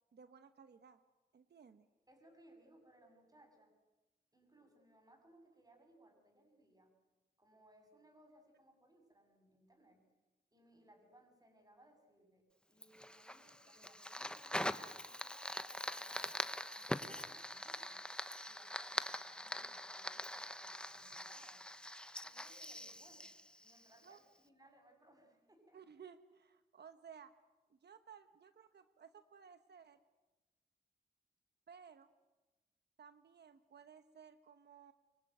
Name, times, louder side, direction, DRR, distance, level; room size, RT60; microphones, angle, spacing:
voice 1, 0.1-1.0 1.3-1.9 13.2-13.4 24.0-24.2 25.7-27.3 27.7-30.0 31.7-32.1 33.0-34.9, right 7 dB, 85° right, 9 dB, 1.1 m, -58 dB
voice 2, 2.1-3.7 4.3-6.9 7.4-10.0 10.5-18.0 18.5-21.6 22.2-23.3 23.6-25.8, right 1 dB, 20° right, 4 dB, 7.5 m, -66 dB
Fire, 12.8-24.2, left 1 dB, 5° left, 1.2 m, -43 dB
24.5 x 23.5 x 9.3 m, 1.1 s
wide cardioid pair, 95°, 17 cm